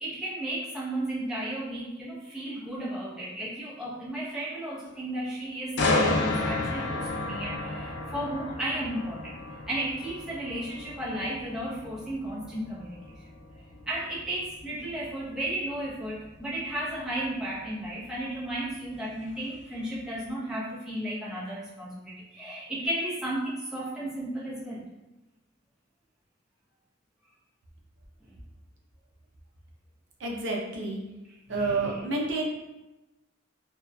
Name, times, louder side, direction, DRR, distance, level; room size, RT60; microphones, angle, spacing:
voice 1, 0.0-9.4 9.7-13.0 13.9-24.8 31.5-31.9, right 1 dB, 5° right, -8 dB, 0.6 m, -34 dB
sound 1, 5.8-19.6 20.0-20.3, left 2 dB, 65° left, 0.4 m, -33 dB
voice 2, 30.2-31.0 31.5-32.5, right 3 dB, 80° right, -1 dB, 0.5 m, -29 dB
2.6 x 2.2 x 2.2 m, 1.0 s
head